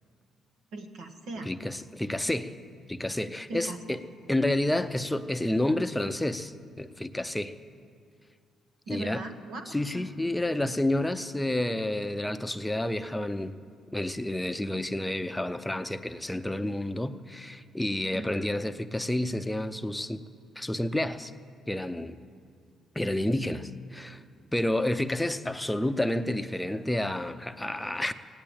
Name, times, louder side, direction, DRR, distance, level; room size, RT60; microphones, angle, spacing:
voice 1, 0.7-1.5 3.5-3.8 8.9-10.2 18.1-18.5, right 2 dB, 80° right, 5 dB, 1.4 m, -39 dB
voice 2, 1.4-2.6 2.9-4.0 4.3-7.5 8.9-9.2 9.7-13.6 13.9-20.2 20.6-21.3 21.7-22.2 23.0-24.2 24.5-28.1, left 1 dB, 10° left, 9 dB, 0.6 m, -30 dB
17.0 x 8.8 x 8.8 m, 2.2 s
cardioid pair, 90°, 0 cm